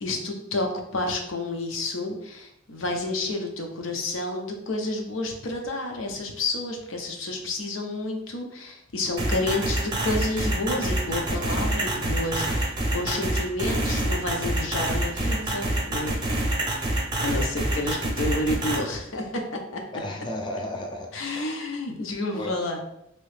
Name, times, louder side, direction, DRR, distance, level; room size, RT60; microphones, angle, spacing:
voice 1, 0.0-16.1 17.2-19.8 21.1-22.8, left 2 dB, 85° left, 2 dB, 0.6 m, -30 dB
sound 1, 9.2-18.8, right 1 dB, 25° right, 0.6 m, -26 dB
voice 2, 19.9-21.1 21.4-21.6 22.3-22.8, left 1 dB, 25° left, 1 dB, 0.4 m, -34 dB
3.0 x 2.7 x 3.2 m, 0.79 s
head